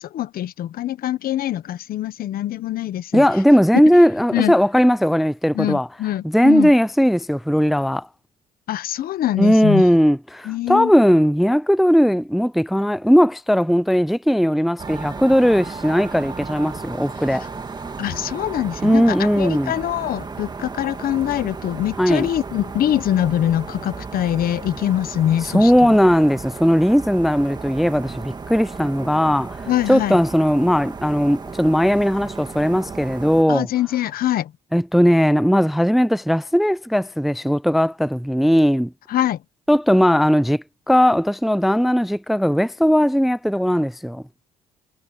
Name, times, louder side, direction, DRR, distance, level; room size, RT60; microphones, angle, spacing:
voice 1, 0.0-3.3 4.3-4.5 5.5-6.7 8.7-9.8 10.4-10.9 18.0-25.9 29.7-30.2 33.5-34.5 39.1-39.4, left 12 dB, 60° left, 1.2 m, -23 dB
voice 2, 3.1-5.9 6.2-8.1 9.4-17.5 18.8-19.7 22.0-22.3 25.5-33.7 34.7-38.9 39.7-44.2, equal, ahead, 0.4 m, -18 dB
sound 1, 14.8-33.4, right 4 dB, 25° right, 1.9 m, -34 dB
cardioid pair, 110°, 17 cm